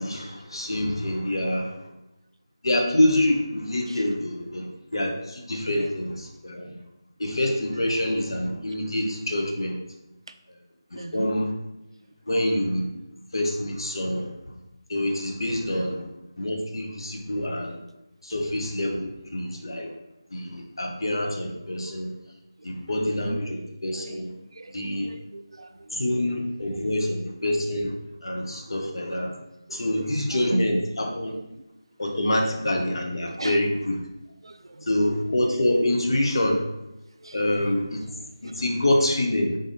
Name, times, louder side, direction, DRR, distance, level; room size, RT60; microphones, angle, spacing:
voice 1, 0.0-1.8 2.6-6.8 7.2-9.8 10.9-11.5 12.3-12.9 13.3-14.3 14.9-16.1 16.4-17.8 18.2-19.9 20.3-22.1 22.6-24.3 24.7-25.1 25.9-27.9 28.2-29.3 29.7-31.3 32.0-34.0 34.9-36.6 37.3-38.0 38.4-39.6, left 1 dB, 70° left, 2 dB, 0.7 m, -26 dB
voice 2, 10.9-11.3 14.0-14.1 15.7-15.9 22.6-22.7 23.0-23.4 24.0-24.3 24.5-26.0 26.7-27.0 29.7-30.8 31.3-31.4 33.4-33.6 34.4-34.9 37.2-37.6 38.5-38.6, right 1 dB, 80° right, 9 dB, 0.3 m, -35 dB
3.7 x 3.4 x 2.6 m, 0.93 s
figure-of-eight pair, 165°, 3 cm